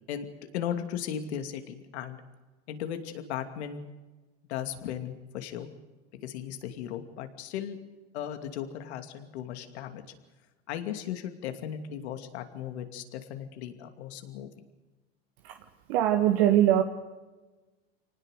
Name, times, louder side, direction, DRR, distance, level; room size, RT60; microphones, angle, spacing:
voice 1, 0.5-2.2 2.7-3.9 4.5-5.7 6.2-7.8 8.1-10.0 10.7-14.5, left 9 dB, 80° left, 7 dB, 2.7 m, -36 dB
voice 2, 15.4-16.8, right 12 dB, 70° right, 5 dB, 1.7 m, -23 dB
25.5 x 19.0 x 6.6 m, 1.2 s
supercardioid pair, 105°, 33 cm